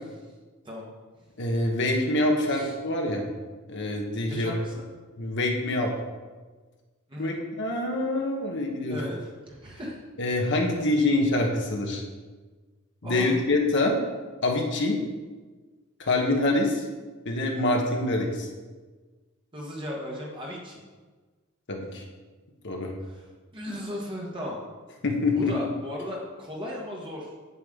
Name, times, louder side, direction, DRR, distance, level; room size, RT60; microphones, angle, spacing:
voice 1, 1.4-3.2 3.7-4.5 5.2-5.9 7.2-9.0 10.2-12.0 13.0-14.0 14.4-15.0 16.0-16.9 17.2-18.5 21.7-22.0 22.6-22.9 25.0-25.6, left 2 dB, 55° left, 1 dB, 1.2 m, -25 dB
voice 2, 4.3-4.9 7.1-7.4 8.9-10.0 13.0-13.4 19.5-20.8 23.1-23.2 23.5-24.6 25.4-27.3, left 1 dB, 25° right, -3 dB, 1.3 m, -36 dB
8.2 x 8.1 x 3.7 m, 1.3 s
head